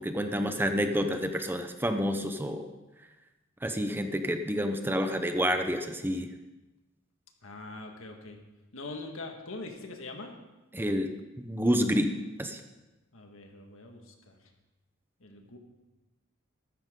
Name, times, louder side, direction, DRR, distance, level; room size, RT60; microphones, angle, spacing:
voice 1, 0.0-2.7 3.6-6.3 10.7-11.1 11.4-12.1 12.4-12.6, equal, 10° right, 7 dB, 0.7 m, -29 dB
voice 2, 7.4-8.4 8.7-10.3 13.1-14.4 15.2-15.6, left 2 dB, 70° left, 4 dB, 1.7 m, -43 dB
15.0 x 13.0 x 3.8 m, 1.1 s
head